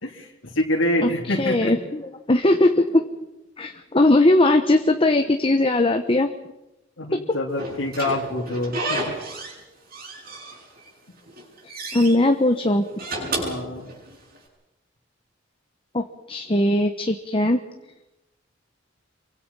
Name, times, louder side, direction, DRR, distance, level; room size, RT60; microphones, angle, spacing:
voice 1, 0.0-1.7 7.0-9.0 13.4-13.9, left 1 dB, 75° left, 0 dB, 3.2 m, -26 dB
voice 2, 1.0-3.0 3.6-6.3 11.9-12.8 15.9-17.6, left 1 dB, 30° left, 5 dB, 1.2 m, -19 dB
Slam / Squeak, 7.6-9.6 9.9-10.9 11.3-12.2 12.8-14.4, right 1 dB, 50° right, 7.5 m, -31 dB
27.5 x 24.0 x 5.6 m, 0.96 s
head